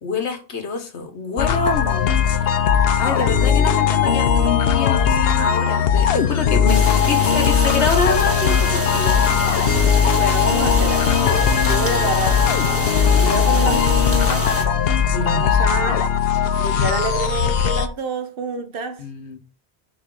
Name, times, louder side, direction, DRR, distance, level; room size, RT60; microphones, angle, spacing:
voice 1, 0.0-2.4 3.0-9.1 15.1-15.6 19.0-19.4, left 3 dB, 85° left, 1.5 m, -26 dB
sound 1, 1.4-17.9, left 7 dB, 65° left, 0.8 m, -18 dB
voice 2, 3.2-4.6 10.1-12.5 13.2-14.5 15.1-16.1 16.6-19.0, right 3 dB, 60° right, 1.0 m, -29 dB
sound 2, 6.7-14.6, equal, 15° right, 1.2 m, -27 dB
6.7 x 3.5 x 4.6 m
omnidirectional pair, 1.1 m